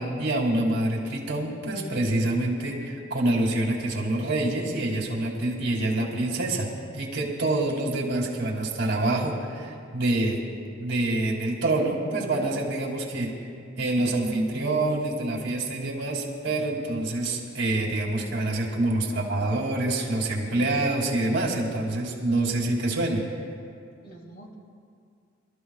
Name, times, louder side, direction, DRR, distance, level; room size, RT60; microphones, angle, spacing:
voice 1, 0.0-10.4 10.8-13.3 13.8-23.4, right 2 dB, 60° right, -1 dB, 2.7 m, -26 dB
voice 2, 18.7-19.3 24.0-24.6, right 1 dB, 50° left, 0 dB, 2.4 m, -48 dB
27.5 x 13.5 x 2.4 m, 2.3 s
head